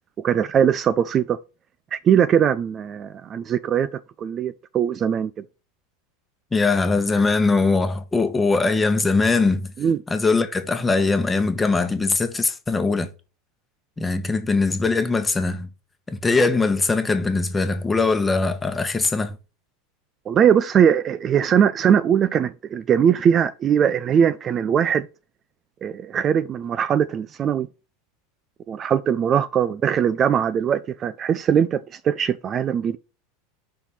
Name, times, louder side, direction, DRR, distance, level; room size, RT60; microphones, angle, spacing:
voice 1, 0.2-1.4 1.9-5.4 9.8-10.0 20.3-25.1 25.8-27.7 28.7-33.0, right 8 dB, 35° right, 0.4 m, -20 dB
voice 2, 6.5-9.7 10.1-13.1 14.0-15.7 16.1-19.4, left 3 dB, 15° left, 1.1 m, -21 dB
5.7 x 4.2 x 5.2 m
figure-of-eight pair, 80°, 0 cm